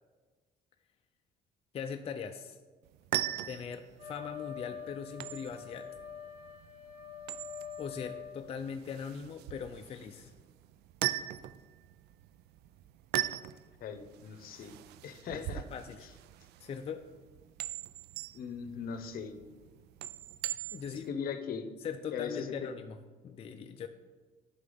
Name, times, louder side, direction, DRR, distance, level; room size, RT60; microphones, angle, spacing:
voice 1, 1.7-2.6 3.4-5.9 7.8-10.3 15.3-16.1 16.6-17.0 20.7-21.1 21.8-23.0 23.2-23.9, left 6 dB, 35° left, 6 dB, 0.4 m, -40 dB
sound 1, 2.8-21.1, right 14 dB, 75° right, 0.4 m, -40 dB
Wind instrument woodwind instrument, 4.0-8.4, left 8 dB, 30° right, 2.3 m, -45 dB
voice 2, 13.8-14.7 15.0-15.6 16.0-16.1 18.3-19.3 20.9-21.7 22.1-22.7, left 6 dB, 60° left, 9 dB, 0.8 m, -39 dB
9.5 x 5.7 x 3.9 m, 1.4 s
cardioid pair, 110°, 17 cm